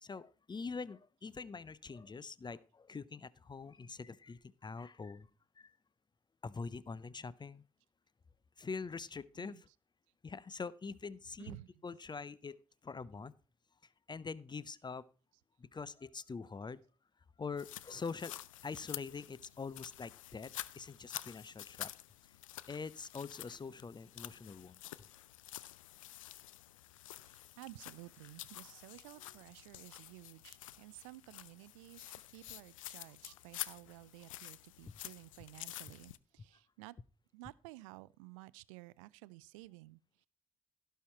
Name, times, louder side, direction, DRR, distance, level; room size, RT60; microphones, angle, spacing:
voice 1, 0.0-5.3 5.6-5.8 6.4-7.6 8.6-9.7 10.2-11.6 11.8-13.3 14.1-15.0 15.6-16.8 17.4-18.3 18.6-21.9 22.7-24.8, left 4 dB, 25° left, 0.7 m, -44 dB
voice 2, 9.4-9.8 11.4-11.8 27.2-37.0 37.3-40.3, right 20 dB, 70° right, 0.4 m, -54 dB
sound 1, 17.6-36.2, left 15 dB, 80° left, 0.4 m, -49 dB
16.5 x 5.7 x 4.4 m
figure-of-eight pair, 40°, 17 cm